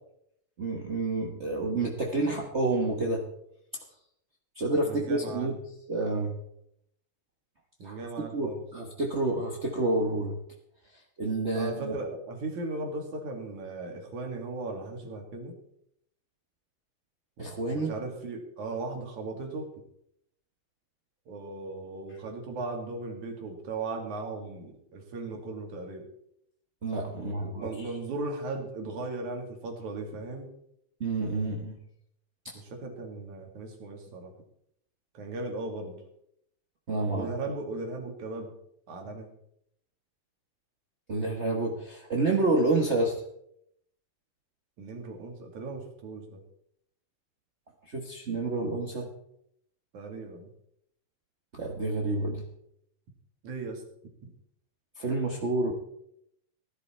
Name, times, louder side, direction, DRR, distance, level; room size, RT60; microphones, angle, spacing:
voice 1, 0.6-3.2 4.5-5.6 5.9-6.3 7.8-8.0 8.3-10.4 11.2-11.9 17.4-17.9 26.8-27.9 31.0-31.8 36.9-37.3 41.1-43.1 47.9-49.1 51.5-52.5 55.0-55.7, right 2 dB, 50° right, 0 dB, 0.8 m, -29 dB
voice 2, 4.8-5.6 7.8-8.6 11.5-15.5 17.7-19.7 21.3-26.1 27.2-30.5 32.5-34.3 35.1-36.0 37.1-38.5 38.9-39.3 44.8-46.4 49.9-50.5 53.4-53.8 54.2-54.3, right 3 dB, 75° right, 3 dB, 3.7 m, -37 dB
16.5 x 12.0 x 4.4 m, 0.74 s
omnidirectional pair, 3.4 m